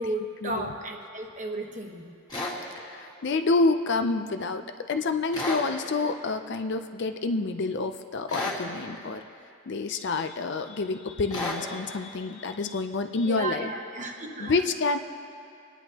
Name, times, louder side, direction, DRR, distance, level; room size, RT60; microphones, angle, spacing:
voice 1, 0.0-2.0 13.2-14.6, right 2 dB, 35° right, 2 dB, 1.1 m, -34 dB
sound 1, 2.3-2.6 5.3-5.7 8.3-8.6 11.3-11.6, left 2 dB, 20° left, 1.9 m, -31 dB
voice 2, 2.8-9.2 9.7-13.7 14.4-15.0, left 3 dB, 50° left, 8 dB, 0.5 m, -28 dB
25.5 x 9.9 x 2.9 m, 2.6 s
head